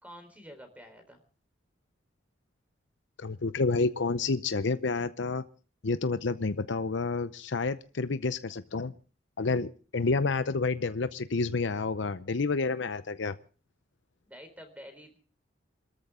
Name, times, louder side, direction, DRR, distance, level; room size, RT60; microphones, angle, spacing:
voice 1, 0.0-1.2 14.2-15.2, equal, 10° right, 7 dB, 4.0 m, -48 dB
voice 2, 3.2-5.4 5.8-8.9 9.4-13.4, left 3 dB, 70° left, 13 dB, 0.7 m, -29 dB
27.5 x 13.5 x 3.7 m, 0.39 s
head